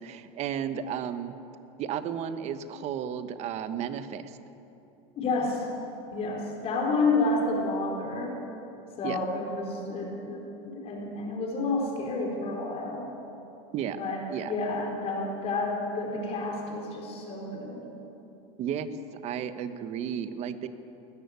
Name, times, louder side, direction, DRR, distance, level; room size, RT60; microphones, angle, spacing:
voice 1, 0.0-1.3 1.8-4.3 9.0-9.2 13.7-14.0 14.3-14.5 18.6-18.9 19.2-20.7, right 9 dB, 40° right, 11 dB, 1.2 m, -33 dB
voice 2, 5.2-5.7 6.1-8.3 9.0-13.1 14.0-17.9, left 3 dB, 35° left, 0 dB, 4.2 m, -30 dB
19.5 x 14.0 x 9.6 m, 2.9 s
supercardioid pair, 135°, 17 cm